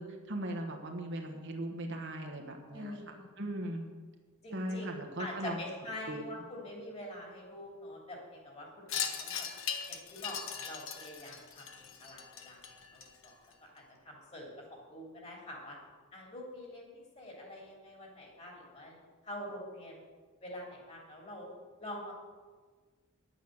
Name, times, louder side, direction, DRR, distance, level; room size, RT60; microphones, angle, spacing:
voice 1, 0.0-3.9 4.5-5.6 6.1-6.3, right 1 dB, 55° right, 3 dB, 1.3 m, -39 dB
voice 2, 2.7-3.3 4.4-9.5 9.9-12.6 12.9-13.3 13.6-15.8 16.1-19.0 19.2-20.0 20.4-21.5 21.8-22.1, left 1 dB, 30° left, -1 dB, 3.1 m, -45 dB
Wind chime, 8.9-13.5, left 7 dB, 60° left, 1.1 m, -39 dB
10.5 x 9.2 x 6.5 m, 1.5 s
head